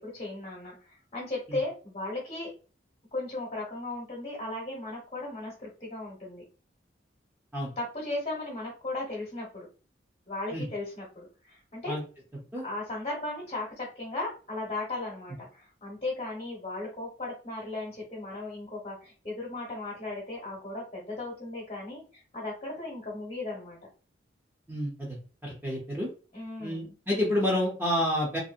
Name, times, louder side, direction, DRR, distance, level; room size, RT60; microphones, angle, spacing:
voice 1, 0.0-2.5 3.1-6.4 7.8-9.7 10.3-12.0 12.6-23.8 26.3-26.9, left 2 dB, 35° left, -5 dB, 1.0 m, -36 dB
voice 2, 24.7-25.1 25.4-26.1 26.6-28.4, left 1 dB, 10° right, -5 dB, 0.6 m, -29 dB
2.7 x 2.0 x 2.4 m, 0.35 s
head